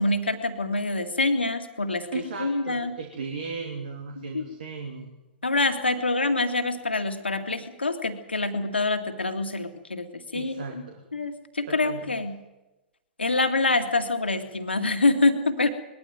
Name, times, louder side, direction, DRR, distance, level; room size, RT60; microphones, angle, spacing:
voice 1, 0.0-3.0 4.3-4.4 5.4-10.8 11.1-12.4 13.2-15.7, left 2 dB, 80° left, 7 dB, 2.1 m, -26 dB
voice 2, 2.1-5.1 10.3-11.1 11.7-12.1, right 4 dB, 60° right, 3 dB, 2.8 m, -36 dB
21.0 x 13.5 x 9.2 m, 1.1 s
figure-of-eight pair, 105°, 6 cm